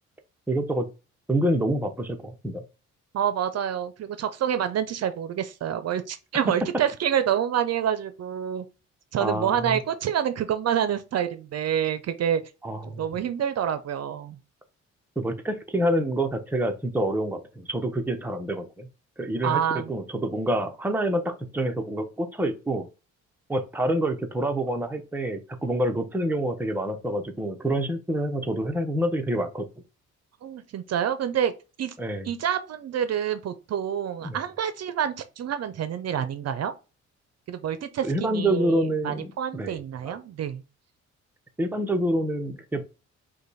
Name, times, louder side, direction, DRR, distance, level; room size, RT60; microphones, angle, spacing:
voice 1, 0.5-0.9 1.3-2.6 9.2-9.8 12.6-13.0 15.2-18.9 19.2-22.9 23.5-29.7 32.0-32.3 34.2-34.4 38.0-39.8 40.0-40.2 41.6-42.8, right 1 dB, 5° right, 0.8 m, -27 dB
voice 2, 3.1-8.6 9.1-12.4 12.9-14.4 19.4-19.9 30.4-31.5 31.8-31.9 32.2-36.7 37.5-40.6, right 9 dB, 55° right, 0.6 m, -27 dB
5.0 x 2.3 x 4.1 m
cardioid pair, 90°, 30 cm